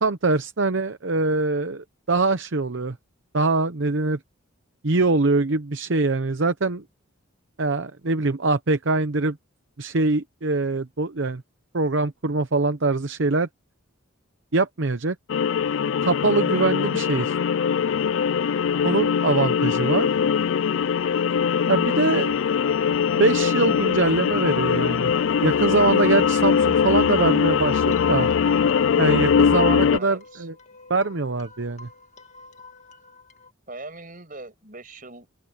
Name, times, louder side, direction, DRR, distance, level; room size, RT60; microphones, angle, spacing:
voice 1, 0.0-3.0 3.3-4.2 4.8-6.8 7.6-9.4 9.8-11.4 11.7-13.5 14.5-15.2 16.0-17.3 18.8-20.1 21.7-22.3 23.1-25.1 25.4-28.3 29.0-30.5 30.9-31.9, right 3 dB, 60° right, 0.8 m, -23 dB
sound 1, 15.3-30.0, left 7 dB, 60° left, 0.3 m, -21 dB
voice 2, 16.9-17.2 29.9-30.5 33.7-35.3, right 2 dB, 40° right, 6.1 m, -41 dB
sound 2, 25.6-33.5, left 3 dB, 35° left, 2.3 m, -47 dB
open air
head